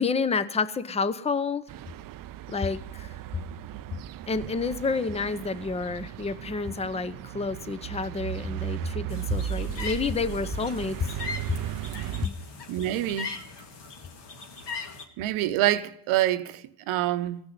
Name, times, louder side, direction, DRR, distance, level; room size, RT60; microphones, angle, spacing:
voice 1, 0.0-1.6 2.5-3.4 4.3-11.1 12.2-12.3, left 4 dB, 15° left, 0.7 m, -29 dB
sound 1, 1.7-12.3, right 12 dB, 45° right, 0.5 m, -36 dB
sound 2, 9.1-15.0, left 4 dB, 55° left, 2.1 m, -39 dB
voice 2, 12.7-13.4 15.2-17.4, right 14 dB, 70° right, 0.9 m, -26 dB
16.0 x 6.1 x 9.1 m
supercardioid pair, 80°, 50 cm